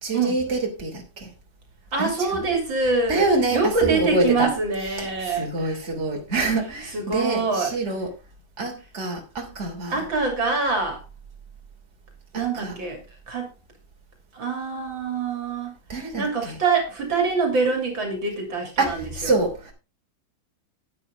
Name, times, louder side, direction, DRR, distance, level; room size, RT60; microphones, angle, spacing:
voice 1, 0.0-1.3 2.0-2.5 3.1-4.5 5.0-8.1 8.6-10.0 12.3-12.7 15.9-16.6 18.8-19.7, right 3 dB, 30° right, 3.3 m, -26 dB
voice 2, 1.9-5.8 6.9-7.8 9.9-11.0 12.3-13.5 14.3-15.7 16.2-19.3, right 4 dB, 60° right, 3.6 m, -25 dB
11.0 x 10.5 x 3.6 m
omnidirectional pair, 2.4 m